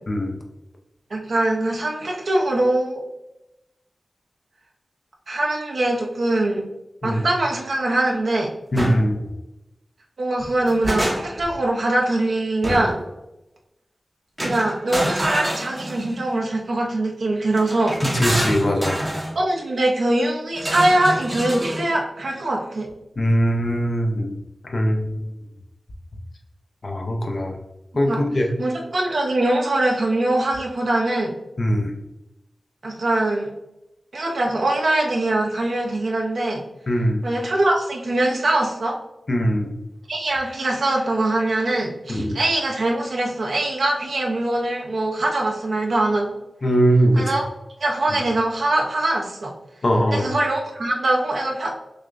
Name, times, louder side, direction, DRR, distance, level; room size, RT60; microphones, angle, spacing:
voice 1, 1.1-3.0 5.3-6.6 7.0-8.5 10.2-12.9 14.4-18.0 19.3-22.9 28.1-28.2 28.6-31.3 32.8-33.5 34.1-36.6 37.2-39.0 40.1-46.4 47.2-47.4 47.8-49.5 50.1-51.7, right 1 dB, 75° right, -1 dB, 0.7 m, -22 dB
voice 2, 8.7-9.2 18.0-19.0 23.2-24.3 24.6-25.1 26.8-27.6 27.9-28.5 31.6-31.9 36.9-37.3 39.3-39.7 42.1-42.4 46.6-47.2 48.1-48.2 49.8-50.3, equal, 50° left, 2 dB, 0.6 m, -21 dB
sound 1, 8.7-9.0 10.4-11.5 12.6-13.1 14.4-16.2 17.5-19.3 20.6-21.9, equal, 15° right, 0.7 m, -26 dB
6.3 x 2.2 x 2.5 m, 0.92 s
wide cardioid pair, 105°, 0 cm